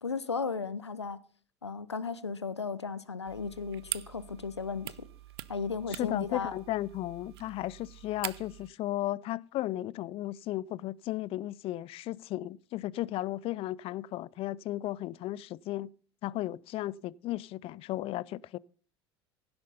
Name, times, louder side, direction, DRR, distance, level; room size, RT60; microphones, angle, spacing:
voice 1, 0.0-1.2 1.6-5.0 5.5-6.5, left 5 dB, 85° left, 0.8 m, -35 dB
sound 1, 3.3-8.7, right 15 dB, 70° right, 0.5 m, -44 dB
voice 2, 5.9-15.9 16.2-18.6, left 15 dB, 40° left, 0.4 m, -35 dB
16.0 x 7.9 x 4.0 m
figure-of-eight pair, 70°, 14 cm